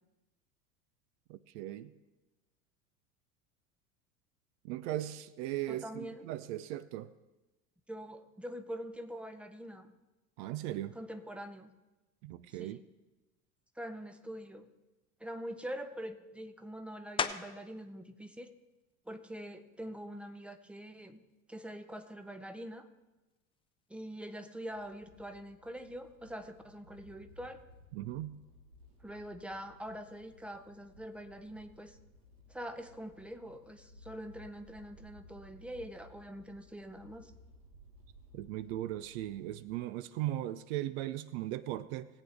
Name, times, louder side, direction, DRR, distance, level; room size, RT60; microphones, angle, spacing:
voice 1, 1.3-1.9 4.6-7.1 10.4-11.0 12.2-12.8 27.9-28.4 38.3-42.1, right 14 dB, 50° right, 15 dB, 0.6 m, -38 dB
voice 2, 5.7-6.2 7.9-9.9 11.0-11.7 12.5-12.8 13.8-14.7 15.2-18.5 19.1-21.2 21.5-22.9 23.9-27.6 29.0-32.0 32.5-37.3, equal, 5° right, 8 dB, 0.9 m, -44 dB
sound 1, 17.2-17.8 18.3-22.8 23.3-28.4 28.7-34.4, left 6 dB, 15° left, 0.5 m, -46 dB
sound 2, 24.7-39.7, left 1 dB, 65° right, 1.9 m, -59 dB
20.5 x 8.3 x 3.5 m, 1.1 s
figure-of-eight pair, 75°, 43 cm